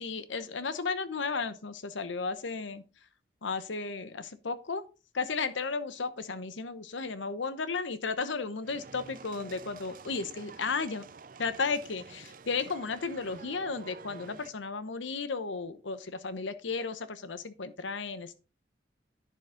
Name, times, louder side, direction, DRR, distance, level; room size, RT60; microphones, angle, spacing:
voice 1, 0.0-2.8 3.4-4.8 5.1-11.0 11.4-18.4, left 4 dB, 80° left, 13 dB, 0.9 m, -34 dB
sound 1, 8.6-14.5, right 4 dB, 45° right, 0.5 m, -49 dB
10.5 x 6.6 x 3.8 m, 0.32 s
head